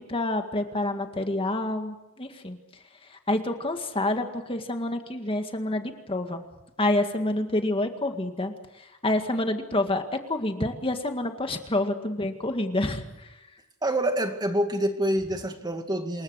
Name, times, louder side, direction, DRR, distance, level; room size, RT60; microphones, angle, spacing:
voice 1, 0.0-2.6 3.0-6.4 6.8-13.3, left 1 dB, 25° left, 1.9 m, -28 dB
voice 2, 13.8-16.2, right 1 dB, 20° right, 2.1 m, -26 dB
27.5 x 22.0 x 6.4 m
head